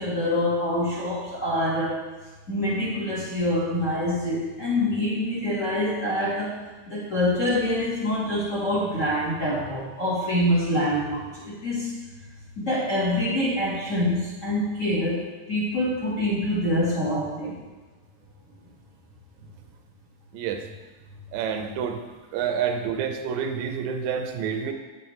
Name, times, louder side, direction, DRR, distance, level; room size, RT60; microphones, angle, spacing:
voice 1, 0.0-2.1 2.5-11.9 12.6-17.6, left 1 dB, 35° left, -7 dB, 1.5 m, -25 dB
voice 2, 20.3-20.6 21.3-22.0 22.3-24.7, right 7 dB, 80° right, 6 dB, 2.0 m, -28 dB
8.3 x 7.8 x 3.1 m, 1.2 s
omnidirectional pair, 3.4 m